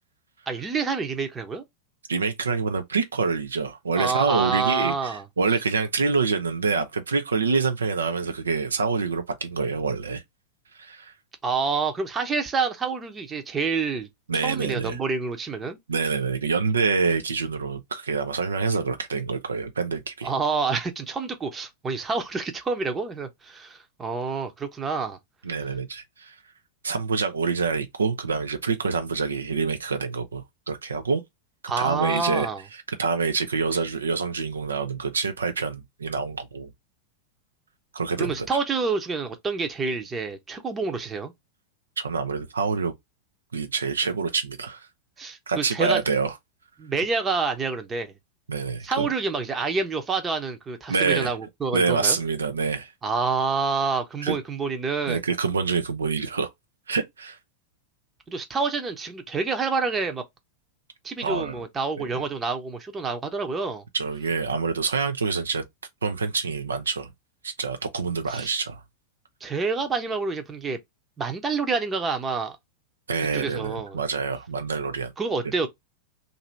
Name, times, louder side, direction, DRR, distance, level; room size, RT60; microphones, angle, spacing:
voice 1, 0.5-1.6 4.0-5.2 11.4-14.1 14.4-15.8 20.2-25.2 31.7-32.6 38.2-41.3 45.2-46.0 46.8-48.1 48.8-52.2 53.0-55.2 58.3-60.2 61.0-63.8 68.3-68.5 69.4-70.8 71.2-72.6 73.3-74.0 75.2-75.7, right 4 dB, 20° right, 0.8 m, -27 dB
voice 2, 2.1-10.2 10.7-11.1 14.3-15.0 15.9-20.3 25.4-26.4 26.8-31.2 31.8-36.7 37.9-38.5 42.0-42.9 43.5-44.9 45.5-46.3 48.5-49.1 50.9-51.3 51.7-52.9 54.2-54.4 55.1-56.5 56.9-57.4 61.2-61.6 62.0-62.1 63.9-65.6 66.0-67.1 67.4-68.8 73.1-75.1, right 5 dB, 70° right, 0.5 m, -26 dB
2.8 x 2.6 x 4.3 m
figure-of-eight pair, 90°, 0 cm